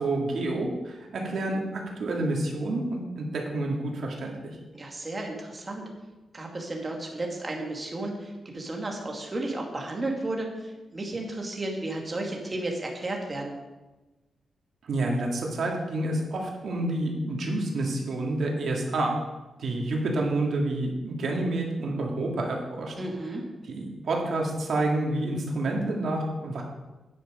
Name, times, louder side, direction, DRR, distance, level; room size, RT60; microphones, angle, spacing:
voice 1, 0.0-4.5 14.9-19.1 19.6-22.9 23.8-26.6, right 2 dB, 65° right, 0 dB, 2.6 m, -28 dB
voice 2, 4.7-5.9 6.3-13.6 23.0-23.4, right 2 dB, 25° right, 0 dB, 2.3 m, -33 dB
9.9 x 9.7 x 5.2 m, 1.1 s
wide cardioid pair, 135°, 0 cm